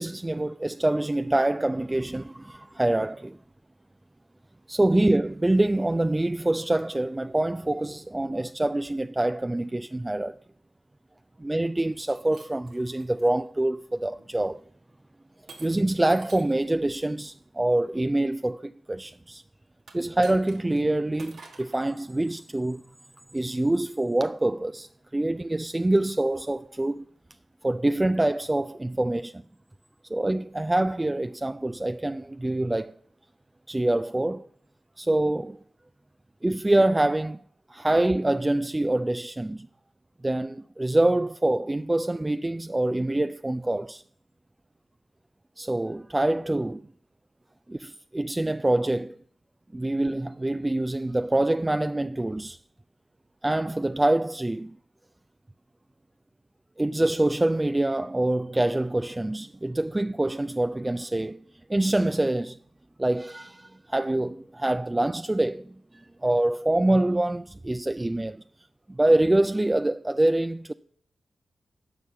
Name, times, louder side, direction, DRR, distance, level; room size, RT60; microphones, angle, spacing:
voice 1, 0.0-3.4 4.7-10.4 11.4-14.6 15.6-19.4 19.9-22.8 23.3-27.0 27.6-29.4 30.1-32.9 33.7-34.4 35.0-35.6 36.4-37.4 37.7-39.7 40.2-44.0 45.6-46.8 47.7-49.1 49.7-52.6 53.4-54.7 56.8-61.4 61.7-62.6 63.0-68.4 69.0-70.7, right 1 dB, 20° right, 0.4 m, -25 dB
Shatter, 11.9-13.3 14.0-14.3 15.5-16.6 19.8-20.8 21.2-21.8, right 4 dB, 80° right, 1.7 m, -49 dB
11.0 x 5.5 x 8.0 m
cardioid pair, 45°, 0 cm